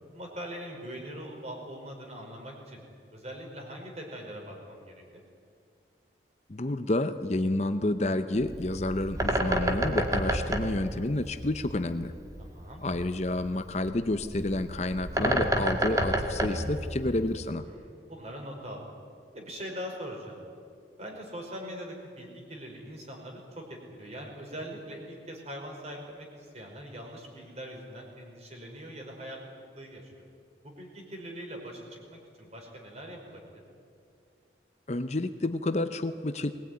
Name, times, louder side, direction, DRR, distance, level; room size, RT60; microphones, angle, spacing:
voice 1, 0.1-2.8 3.1-5.0 12.4-12.8 17.7-18.9 19.3-20.4 21.0-30.3 30.6-33.6, equal, 35° right, 1 dB, 5.1 m, -42 dB
voice 2, 6.5-12.1 12.8-17.6 34.9-36.5, left 2 dB, 35° left, 9 dB, 0.7 m, -29 dB
Bird, 8.4-17.5, right 1 dB, 20° right, 1.8 m, -30 dB
22.0 x 19.5 x 9.6 m, 2.3 s
head